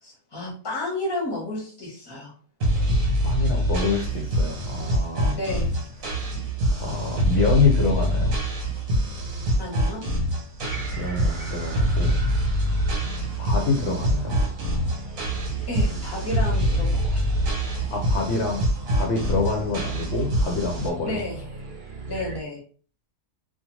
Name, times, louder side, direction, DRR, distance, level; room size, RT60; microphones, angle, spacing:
voice 1, 0.0-2.3 5.3-5.7 9.6-10.1 15.7-17.3 21.0-21.5 22.1-22.6, left 2 dB, 20° left, -3 dB, 0.9 m, -31 dB
sound 1, 2.6-20.9, equal, 70° right, 1.2 m, -25 dB
voice 2, 3.2-5.4 6.2-6.3 6.8-8.4 11.0-12.2 13.4-14.4 17.9-18.7 18.9-21.2, left 4 dB, 60° left, -1 dB, 0.8 m, -26 dB
sound 2, 10.6-22.4, right 3 dB, 50° right, 0.8 m, -37 dB
2.4 x 2.4 x 3.0 m, 0.41 s
omnidirectional pair, 1.5 m